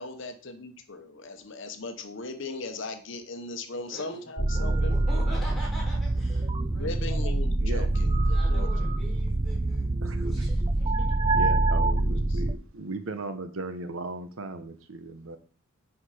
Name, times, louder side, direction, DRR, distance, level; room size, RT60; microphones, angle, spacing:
voice 1, 0.0-5.2 6.7-8.7 12.3-12.4, left 3 dB, 60° left, 7 dB, 0.9 m, -38 dB
voice 2, 3.7-7.1 8.3-9.9 10.1-10.9, right 1 dB, ahead, -5 dB, 4.1 m, -44 dB
sound 1, 4.4-12.5, right 2 dB, 20° right, 0.4 m, -25 dB
voice 3, 10.0-10.5 11.3-15.4, right 2 dB, 75° right, 9 dB, 0.9 m, -37 dB
10.0 x 4.9 x 4.9 m, 0.43 s
head